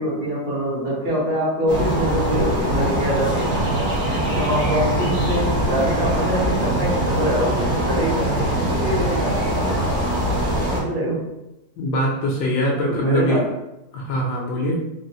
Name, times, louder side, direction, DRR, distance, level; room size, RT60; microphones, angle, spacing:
voice 1, 0.0-3.7 4.4-10.0 10.7-11.3 12.8-13.5, equal, 65° right, -6 dB, 1.6 m, -24 dB
sound 1, 1.7-10.8, right 1 dB, 45° right, 1.0 m, -22 dB
voice 2, 11.8-13.4 13.9-14.8, equal, 75° left, -2 dB, 1.3 m, -22 dB
3.8 x 2.1 x 2.6 m, 0.90 s
omnidirectional pair, 2.0 m